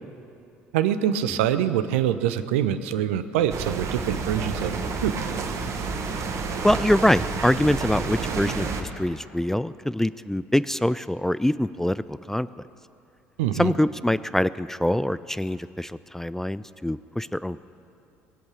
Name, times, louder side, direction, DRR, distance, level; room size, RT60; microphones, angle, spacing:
voice 1, 0.7-4.7 5.0-5.1 13.4-13.7, right 10 dB, 70° right, 12 dB, 0.7 m, -24 dB
sound 1, 3.5-8.8, right 4 dB, 45° right, 1.4 m, -30 dB
voice 2, 6.6-12.5 13.5-17.6, left 1 dB, 5° left, 16 dB, 0.3 m, -24 dB
19.5 x 8.0 x 8.3 m, 2.6 s
figure-of-eight pair, 55°, 7 cm